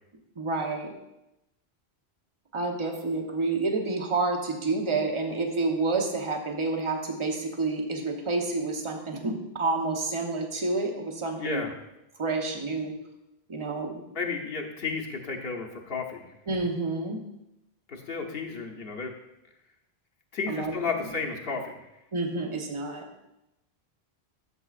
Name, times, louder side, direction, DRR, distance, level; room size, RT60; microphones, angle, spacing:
voice 1, 0.4-0.9 2.5-11.6 12.2-12.9 13.5-14.0 16.5-17.2 20.5-20.7 22.1-23.1, right 3 dB, 30° right, 3 dB, 0.9 m, -29 dB
voice 2, 11.4-11.7 14.1-16.3 17.9-19.1 20.3-21.8, left 4 dB, 65° left, 2 dB, 1.2 m, -32 dB
11.0 x 7.1 x 2.4 m, 0.91 s
omnidirectional pair, 1.1 m